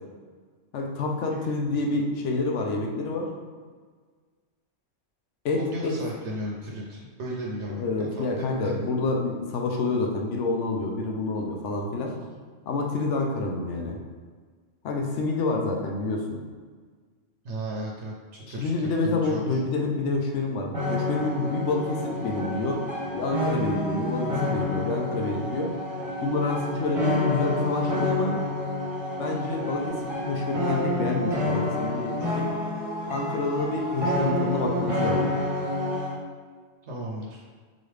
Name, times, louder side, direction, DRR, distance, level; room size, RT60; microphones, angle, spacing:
voice 1, 0.7-3.3 5.4-6.0 7.7-12.2 12.7-14.0 14.8-16.4 18.5-22.8 23.1-25.8 26.2-28.4 29.2-32.5 33.1-35.4, left 3 dB, 75° left, 1 dB, 0.9 m, -28 dB
voice 2, 1.3-1.8 5.5-7.8 8.2-8.8 12.0-12.1 17.4-19.6 36.8-37.4, right 1 dB, 70° right, -3 dB, 0.9 m, -35 dB
sound 1, 20.7-36.2, left 1 dB, 30° right, 0.8 m, -29 dB
3.9 x 3.1 x 3.3 m, 1.5 s
omnidirectional pair, 1.3 m